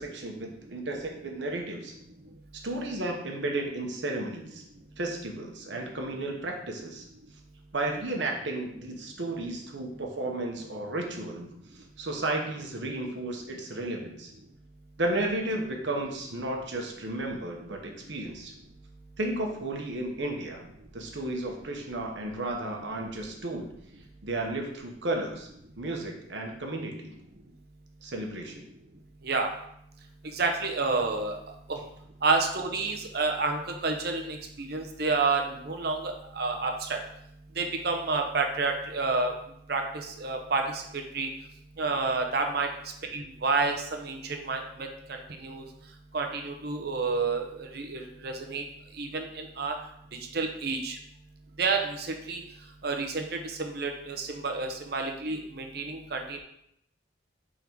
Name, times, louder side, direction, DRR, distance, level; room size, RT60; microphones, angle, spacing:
voice 1, 0.0-1.9 2.5-4.6 5.0-7.0 7.7-11.5 12.0-14.3 15.0-18.5 19.2-20.6 20.9-23.7 24.2-25.5 25.8-27.1 28.0-28.6, right 2 dB, 70° right, 1 dB, 1.1 m, -33 dB
voice 2, 30.3-31.4 31.7-31.8 32.2-37.0 37.6-39.3 39.7-41.3 41.8-42.7 43.1-44.9 45.4-45.6 46.1-48.6 49.0-49.7 50.3-51.0 51.6-52.4 52.8-53.3 53.6-56.4, right 3 dB, 55° right, 3 dB, 0.8 m, -29 dB
5.3 x 3.8 x 4.6 m, 0.75 s
head